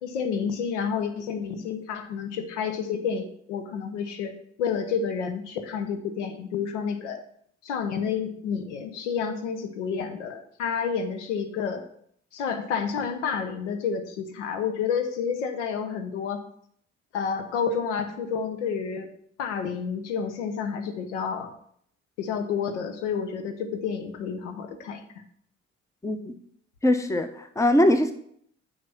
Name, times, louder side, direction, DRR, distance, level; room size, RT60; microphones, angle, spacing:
voice 1, 0.0-7.2 7.6-11.8 12.3-16.4 17.1-19.1 19.4-21.5 22.2-25.0, left 6 dB, 70° left, 7 dB, 1.0 m, -30 dB
voice 2, 26.0-26.3 26.8-28.1, left 1 dB, 10° left, 9 dB, 0.9 m, -22 dB
9.4 x 4.1 x 6.0 m, 0.65 s
figure-of-eight pair, 50°, 37 cm